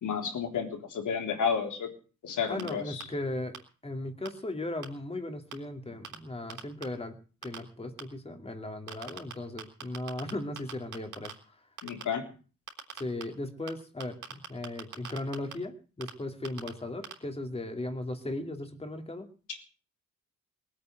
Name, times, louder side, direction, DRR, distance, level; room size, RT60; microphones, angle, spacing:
voice 1, 0.0-1.9 2.2-3.1 11.8-12.2, left 6 dB, 85° left, 4 dB, 3.7 m, -31 dB
voice 2, 2.5-3.6 3.8-7.2 7.4-11.3 13.0-19.3, left 2 dB, 20° left, 6 dB, 2.6 m, -37 dB
sound 1, 2.6-2.7 3.0-3.1 3.5-3.6 4.3-4.4 4.8-4.9 5.5-5.6 6.0-6.2 6.5-6.8 7.4-7.6 8.0-8.1 8.9-9.3 9.6-10.3 10.6-11.3 11.8-12.0 12.7-13.2 13.7-13.8 14.0-15.5 16.0-16.1 16.4-16.7 17.0-17.1, right 8 dB, 80° right, 3.9 m, -39 dB
21.0 x 8.6 x 7.9 m, 0.39 s
wide cardioid pair, 130°, 30 cm